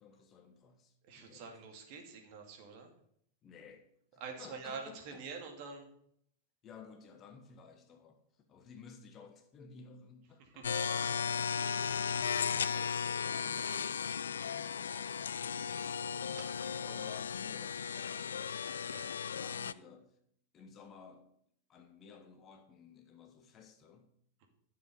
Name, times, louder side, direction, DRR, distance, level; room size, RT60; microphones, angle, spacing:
voice 1, 0.0-1.6 3.4-3.9 4.1-5.2 6.6-11.2 12.6-16.1 16.7-18.6 19.2-20.2 20.5-21.4 21.7-24.1, left 6 dB, 30° left, 1.5 m, -56 dB
voice 2, 1.0-2.9 4.2-5.9 10.6-10.7 16.3-16.4 18.8-19.0, right 5 dB, 45° right, 2.3 m, -46 dB
sound 1, 10.6-19.7, left 7 dB, 70° left, 0.3 m, -36 dB
12.5 x 7.2 x 5.4 m
figure-of-eight pair, 90°, 0 cm